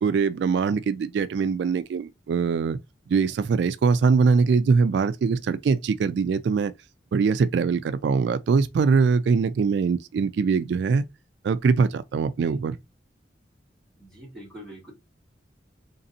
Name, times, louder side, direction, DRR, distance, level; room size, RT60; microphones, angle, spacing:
voice 1, 0.0-2.8 3.1-6.7 7.1-11.0 11.4-12.8, right 5 dB, 70° right, 0.3 m, -22 dB
voice 2, 14.0-14.9, equal, 5° left, 2.5 m, -44 dB
3.8 x 3.3 x 2.7 m
head